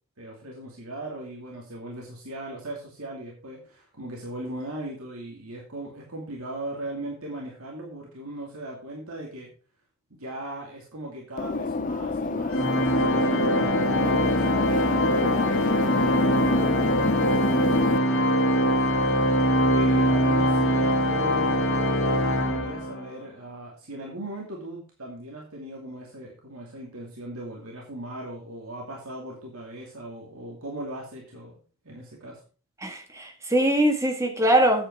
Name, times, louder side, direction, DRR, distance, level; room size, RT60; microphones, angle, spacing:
voice 1, 0.2-9.5 10.1-19.3 19.7-31.6 31.8-32.4, right 1 dB, 90° right, 2.6 m, -38 dB
sound 1, 11.4-18.0, left 3 dB, 35° left, 0.5 m, -27 dB
Organ, 12.5-23.1, equal, 70° left, 1.6 m, -23 dB
voice 2, 32.8-34.9, right 1 dB, 15° right, 1.7 m, -22 dB
8.8 x 8.1 x 4.7 m
head